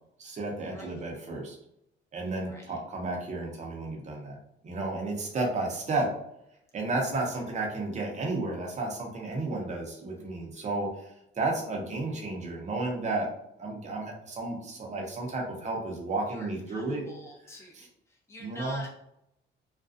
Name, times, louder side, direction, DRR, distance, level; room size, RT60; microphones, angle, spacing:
voice 1, 0.2-1.6 2.1-4.4 4.6-6.1 6.7-13.3 13.6-17.1 18.4-18.8, right 2 dB, 35° right, 0 dB, 0.7 m, -32 dB
voice 2, 0.7-1.0 2.5-2.7 7.1-7.4 10.2-10.6 16.3-17.7 18.1-18.9, equal, 15° left, -1 dB, 0.7 m, -47 dB
2.4 x 2.2 x 2.5 m, 0.78 s
cardioid pair, 90°, 20 cm